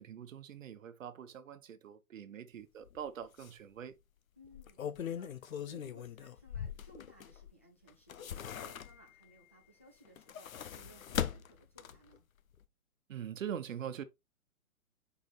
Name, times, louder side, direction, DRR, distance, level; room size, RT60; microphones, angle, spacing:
voice 1, 0.0-3.9 13.1-14.0, right 9 dB, 65° right, 1.1 m, -43 dB
sound 1, 2.9-3.0 3.4-3.5 4.4-7.5 7.9-9.2 10.1-12.2 12.5-12.6, left 9 dB, 70° left, 0.9 m, -40 dB
voice 2, 4.4-12.3, equal, 10° left, 0.3 m, -61 dB
6.4 x 5.2 x 3.2 m
hypercardioid pair, 130°, 43 cm